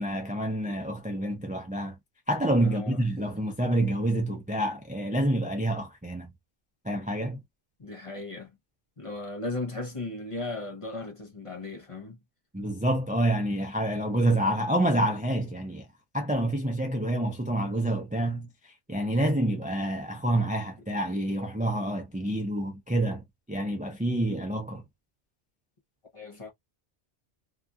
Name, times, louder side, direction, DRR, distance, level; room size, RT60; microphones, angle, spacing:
voice 1, 0.0-2.0 2.3-6.3 6.8-7.4 12.5-15.9 16.1-18.5 18.9-24.8, right 1 dB, 10° right, 0.4 m, -27 dB
voice 2, 2.6-3.0 7.8-8.5 9.0-12.2 26.1-26.5, left 2 dB, 30° left, 0.7 m, -36 dB
2.9 x 2.4 x 2.4 m
omnidirectional pair, 1.2 m